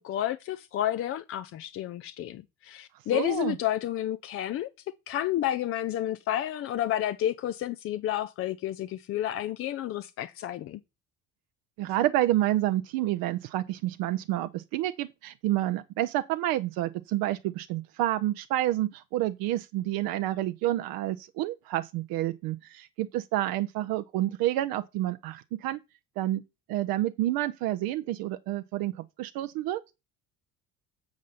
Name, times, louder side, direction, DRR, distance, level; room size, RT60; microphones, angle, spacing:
voice 1, 0.0-4.7 5.1-10.8, left 12 dB, 30° left, 0.5 m, -30 dB
voice 2, 3.1-3.6 11.8-25.8 26.2-26.4 26.7-28.9 29.2-29.8, right 14 dB, 50° right, 0.7 m, -29 dB
7.3 x 7.3 x 4.0 m
figure-of-eight pair, 55°, 47 cm